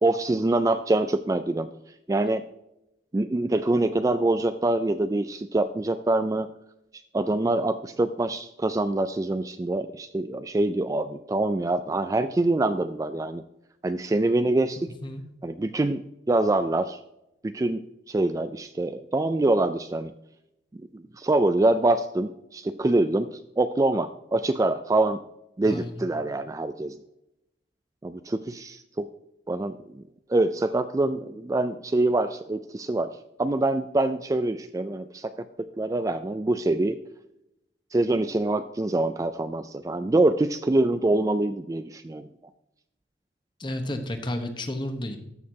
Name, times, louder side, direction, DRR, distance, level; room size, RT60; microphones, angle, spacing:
voice 1, 0.0-1.7 2.1-2.5 3.1-6.5 7.1-13.4 13.8-14.9 15.4-16.0 16.3-17.0 17.4-17.8 18.1-20.1 20.9-25.2 25.6-27.0 28.0-29.1 29.5-30.0 30.3-33.1 33.4-35.3 35.6-37.0 37.9-42.3, right 2 dB, 20° right, 11 dB, 0.3 m, -25 dB
voice 2, 14.8-15.2 25.6-26.0 43.6-45.2, left 1 dB, 25° left, 6 dB, 1.1 m, -32 dB
13.5 x 6.5 x 2.8 m, 0.85 s
head